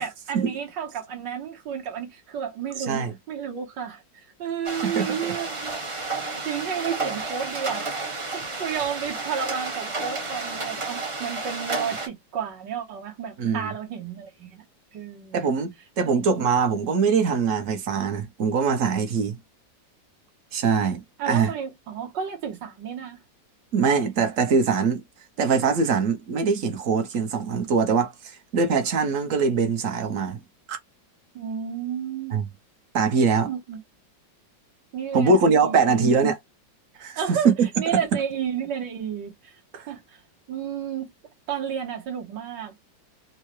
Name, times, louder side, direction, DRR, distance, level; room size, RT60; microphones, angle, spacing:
voice 1, 0.0-5.7 6.2-7.9 8.2-14.6 14.9-15.4 16.0-16.2 21.2-23.2 31.4-32.4 33.4-33.8 34.9-36.0 37.2-39.6 39.9-40.2 40.5-41.1 41.5-42.8, right 7 dB, 75° right, 1.8 m, -32 dB
voice 2, 2.8-3.1 4.8-5.0 13.4-13.7 15.3-15.7 16.0-19.4 20.5-21.5 23.7-25.0 25.4-30.4 30.7-30.8 32.3-32.5 32.9-33.5 35.1-36.4 37.0-37.5 39.7-39.9, right 5 dB, 60° right, 0.9 m, -22 dB
sound 1, 4.6-12.1, right 3 dB, 40° right, 0.4 m, -31 dB
4.5 x 2.1 x 3.1 m
omnidirectional pair, 2.0 m